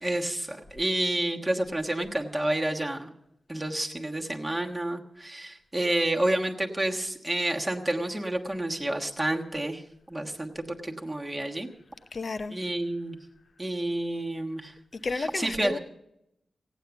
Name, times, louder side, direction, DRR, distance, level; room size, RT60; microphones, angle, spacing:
voice 1, 0.0-3.1 3.5-9.8 10.1-11.7 12.5-13.2 13.6-14.7 15.1-15.8, right 1 dB, 10° right, 1.3 m, -29 dB
voice 2, 12.1-12.6 15.0-15.8, left 3 dB, 45° left, 0.7 m, -32 dB
17.0 x 9.1 x 7.0 m
wide cardioid pair, 125°, 0 cm